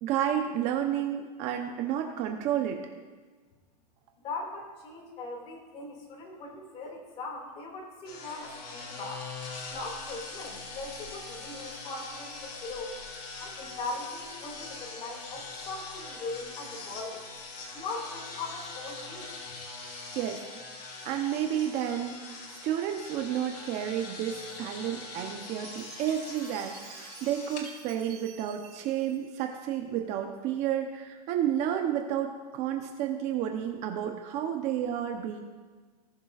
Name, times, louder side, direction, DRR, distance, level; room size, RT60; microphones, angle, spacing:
voice 1, 0.0-2.8 20.1-35.4, right 10 dB, 35° right, 4 dB, 0.8 m, -31 dB
voice 2, 4.2-9.3 9.7-13.0 13.4-17.3 17.7-19.3, left 3 dB, 30° left, 0 dB, 2.2 m, -40 dB
sound 1, 8.0-27.7, left 3 dB, 85° left, 2.8 m, -43 dB
Chime, 25.6-30.0, right 9 dB, 65° right, 1.6 m, -50 dB
19.0 x 6.8 x 2.4 m, 1.4 s
supercardioid pair, 150°, 21 cm